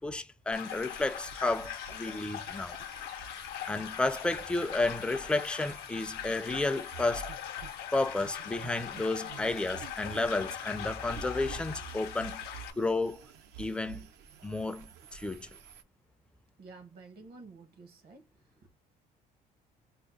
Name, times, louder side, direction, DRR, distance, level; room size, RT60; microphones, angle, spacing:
voice 1, 0.0-2.8 3.7-7.2 7.9-12.4 12.8-13.2 13.6-14.1 14.4-15.5, left 2 dB, 5° left, 0.3 m, -32 dB
sound 1, 0.5-12.7, left 10 dB, 85° left, 0.6 m, -41 dB
sound 2, 0.6-15.8, right 7 dB, 80° right, 0.5 m, -50 dB
voice 2, 16.6-18.3 18.6-18.7, right 3 dB, 65° right, 0.9 m, -51 dB
2.8 x 2.1 x 3.8 m
cardioid pair, 110°, 17 cm